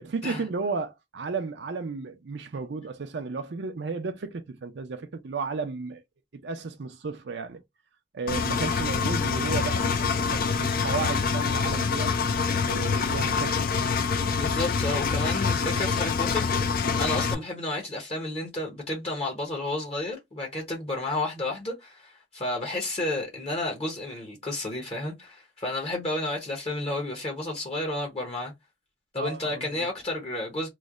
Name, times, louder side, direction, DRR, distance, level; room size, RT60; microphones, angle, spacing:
voice 1, 0.0-6.0 6.4-7.6 8.1-12.1 12.7-13.7 29.2-29.9, right 4 dB, 70° right, 0.5 m, -33 dB
Engine, 8.3-17.4, left 5 dB, 50° left, 0.4 m, -26 dB
voice 2, 14.4-28.5 29.1-30.7, left 2 dB, 35° left, 0.9 m, -31 dB
3.1 x 2.1 x 3.7 m
head